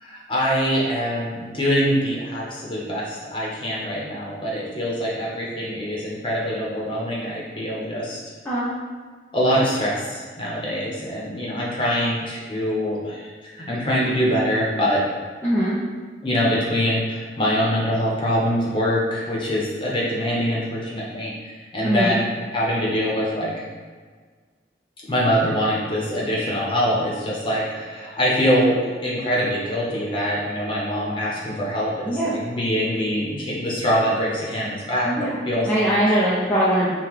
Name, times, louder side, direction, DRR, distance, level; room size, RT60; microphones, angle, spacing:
voice 1, 0.0-8.2 9.3-15.0 16.2-23.5 25.1-36.1, equal, 30° left, -5 dB, 0.9 m, -24 dB
voice 2, 15.4-15.8 21.8-22.1 32.0-32.3 35.0-35.4 35.6-36.9, right 1 dB, 10° left, -10 dB, 0.5 m, -21 dB
5.6 x 2.3 x 3.1 m, 1.5 s
head